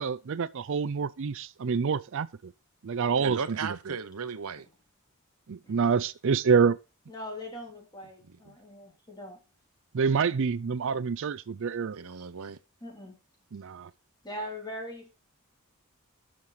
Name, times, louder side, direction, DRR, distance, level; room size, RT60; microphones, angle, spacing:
voice 1, 0.0-2.5 2.8-4.0 5.5-6.8 9.9-12.0 13.5-13.9, right 5 dB, 60° right, 0.4 m, -27 dB
voice 2, 3.2-4.7 8.4-8.5 11.9-12.6, right 5 dB, 80° right, 0.9 m, -36 dB
voice 3, 7.1-9.4 12.8-13.2 14.2-15.1, left 1 dB, 20° left, 3.4 m, -41 dB
10.5 x 6.5 x 5.9 m
head